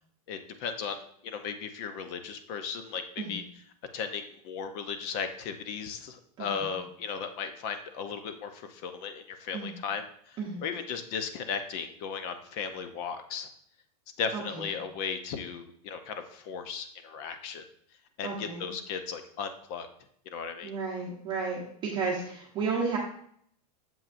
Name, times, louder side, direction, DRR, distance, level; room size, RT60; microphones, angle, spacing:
voice 1, 0.3-3.4 3.9-13.5 14.2-17.6 18.2-19.9 20.3-20.7, left 6 dB, 40° left, 8 dB, 0.7 m, -36 dB
voice 2, 6.4-6.8 9.5-9.7 10.4-10.6 14.3-14.7 18.2-18.7 20.6-23.0, right 4 dB, 20° right, -2 dB, 0.9 m, -33 dB
7.1 x 5.8 x 2.5 m, 0.64 s
supercardioid pair, 160°, 21 cm